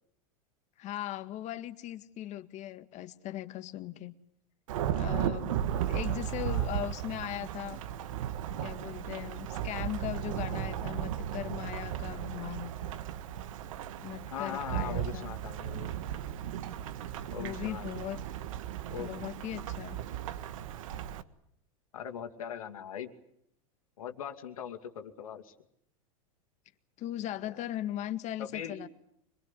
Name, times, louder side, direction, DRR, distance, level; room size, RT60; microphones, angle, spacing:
voice 1, 0.8-4.2 4.9-7.8 8.6-12.7 14.0-15.3 17.4-18.2 19.0-20.1 27.0-28.9, left 13 dB, 40° left, 11 dB, 1.8 m, -39 dB
Thunderstorm / Rain, 4.7-21.2, right 10 dB, 75° right, 1.5 m, -35 dB
voice 2, 6.2-6.8 14.3-15.9 17.3-17.9 18.9-19.1 21.9-23.1 24.0-25.5 27.4-27.6 28.4-28.8, left 8 dB, 85° left, 5 dB, 2.5 m, -40 dB
25.5 x 20.5 x 9.9 m, 0.73 s
hypercardioid pair, 110°, 18 cm